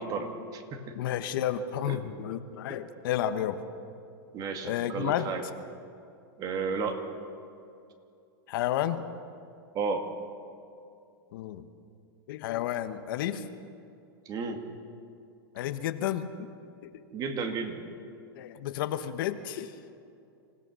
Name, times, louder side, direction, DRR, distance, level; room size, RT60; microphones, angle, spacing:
voice 1, 0.0-1.0 1.9-2.0 2.7-2.8 4.3-5.4 6.4-7.0 9.7-10.1 14.3-14.6 17.1-17.9, right 4 dB, 30° right, 6 dB, 2.0 m, -33 dB
voice 2, 0.9-3.6 4.6-5.3 8.5-9.0 11.3-11.7 12.3-13.4 15.5-16.5 16.8-16.9 18.3-19.7, left 11 dB, 60° left, 10 dB, 1.2 m, -31 dB
26.5 x 16.5 x 6.3 m, 2.6 s
supercardioid pair, 145°, 13 cm